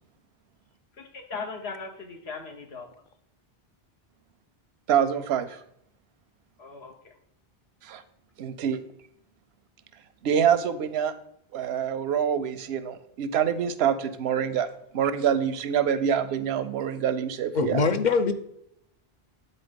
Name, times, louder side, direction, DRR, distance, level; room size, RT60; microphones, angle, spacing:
voice 1, 1.0-2.9 6.6-6.9, left 4 dB, 85° left, 4 dB, 1.4 m, -38 dB
voice 2, 4.9-5.6 7.8-8.0 8.4-8.8 10.2-11.1 11.5-14.7 14.9-17.8, right 8 dB, 90° right, 13 dB, 0.9 m, -25 dB
voice 3, 17.5-18.3, left 4 dB, 55° left, 9 dB, 0.7 m, -23 dB
8.6 x 4.1 x 5.1 m, 0.76 s
omnidirectional pair, 1.0 m